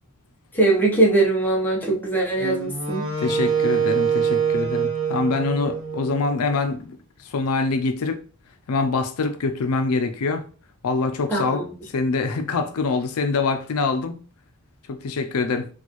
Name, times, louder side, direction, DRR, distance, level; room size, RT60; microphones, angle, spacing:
voice 1, 0.5-3.1 11.3-11.7, right 2 dB, 10° left, 0.8 m, -21 dB
Wind instrument woodwind instrument, 2.4-6.6, right 6 dB, 60° right, 1.0 m, -25 dB
voice 2, 3.2-7.0 7.3-8.2 8.7-10.4 10.8-11.6 11.9-14.2 14.9-15.7, left 4 dB, 85° left, 0.5 m, -24 dB
4.2 x 2.4 x 3.0 m
head